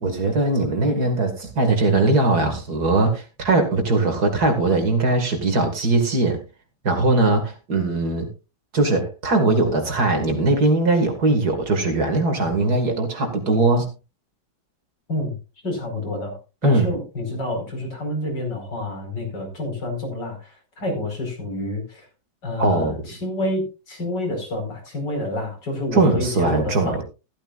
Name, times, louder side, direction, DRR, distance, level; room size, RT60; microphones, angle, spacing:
voice 1, 0.0-6.4 6.8-8.3 8.7-13.9 16.6-16.9 22.6-23.0 25.9-27.0, right 2 dB, 50° right, 2.6 m, -20 dB
voice 2, 15.6-16.4 16.6-22.1 22.4-27.0, left 1 dB, 60° left, 5.5 m, -28 dB
14.5 x 13.5 x 2.5 m
omnidirectional pair, 2.1 m